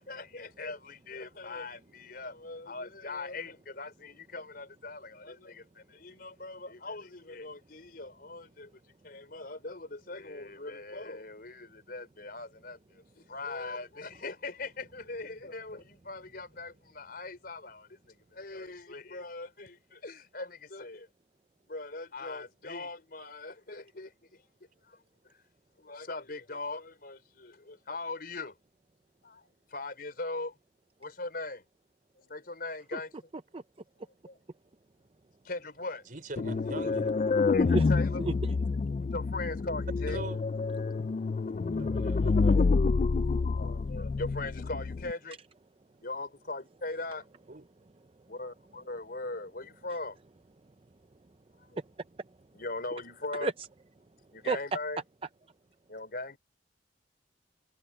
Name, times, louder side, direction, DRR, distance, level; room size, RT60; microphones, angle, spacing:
voice 1, 0.0-21.1 21.7-24.5 24.8-25.4 25.8-28.6 29.2-30.6 31.0-31.7 32.1-33.1 34.2-34.4 35.4-36.1 37.5-38.2 39.1-40.2 43.2-45.4 45.8-47.3 48.3-50.2 51.5-51.8 52.5-53.5 54.3-55.0 55.9-56.4, left 2 dB, 55° left, 4.7 m, -40 dB
voice 2, 36.1-37.1 40.1-40.4 41.8-42.6 47.5-47.6, right 2 dB, 50° right, 4.5 m, -42 dB
sound 1, 36.4-45.1, left 4 dB, 40° left, 0.3 m, -28 dB
voice 3, 51.7-52.4 53.4-53.5 54.5-54.6, right 3 dB, 30° right, 0.5 m, -33 dB
head